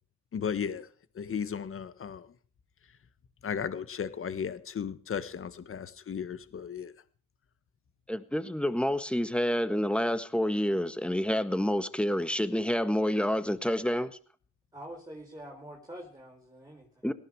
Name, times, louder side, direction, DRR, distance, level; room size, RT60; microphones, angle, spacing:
voice 1, 0.3-0.9 1.1-2.3 3.4-6.9, left 7 dB, 45° left, 13 dB, 1.6 m, -35 dB
voice 2, 8.1-14.2 17.0-17.1, equal, 5° left, 12 dB, 1.5 m, -28 dB
voice 3, 14.7-17.1, right 1 dB, 10° right, 0 dB, 4.3 m, -46 dB
18.0 x 15.0 x 4.8 m, 0.42 s
cardioid pair, 90°, 30 cm